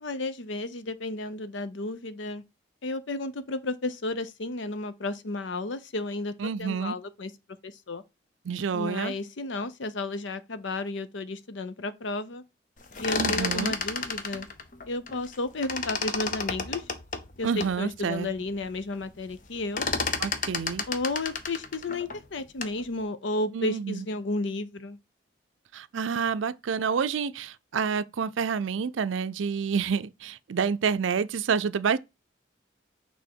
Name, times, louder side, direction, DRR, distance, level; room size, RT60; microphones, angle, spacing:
voice 1, 0.0-2.4 2.8-6.3 6.6-7.3 7.6-8.0 8.7-12.4 13.0-14.5 14.9-16.8 17.4-19.8 20.9-25.0, left 2 dB, 75° left, 0.7 m, -32 dB
voice 2, 6.4-7.0 8.4-9.1 13.2-13.7 17.4-18.3 20.2-20.9 23.5-24.1 25.7-32.0, right 6 dB, 85° right, 0.5 m, -28 dB
sound 1, 12.8-15.4 15.6-17.8 18.3-18.4 18.6-19.0 19.3-22.8, left 4 dB, 40° left, 0.7 m, -31 dB
6.3 x 3.6 x 4.4 m
head